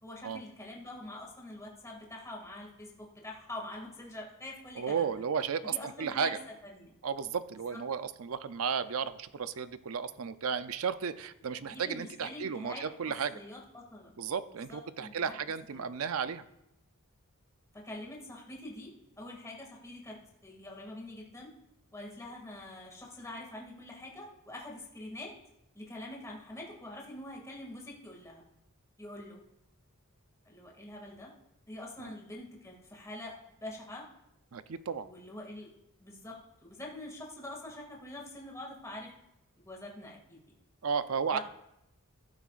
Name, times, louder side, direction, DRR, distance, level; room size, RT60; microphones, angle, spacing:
voice 1, 0.0-5.2 5.6-6.4 6.6-6.9 7.7-7.8 11.6-12.8 13.3-14.1 14.7-15.3 15.7-15.9 17.7-20.2 20.4-21.5 21.9-25.3 25.7-28.4 29.0-29.4 30.5-31.3 31.7-33.3 33.6-34.1 35.0-35.7 36.0-39.1 39.6-40.4 41.3-41.4, left 1 dB, 15° left, -2 dB, 2.2 m, -45 dB
voice 2, 4.8-6.4 7.0-13.4 14.2-16.4 32.0-32.1 34.5-35.1 40.8-41.4, right 6 dB, 70° right, 12 dB, 0.5 m, -34 dB
15.5 x 12.0 x 2.5 m, 0.84 s
head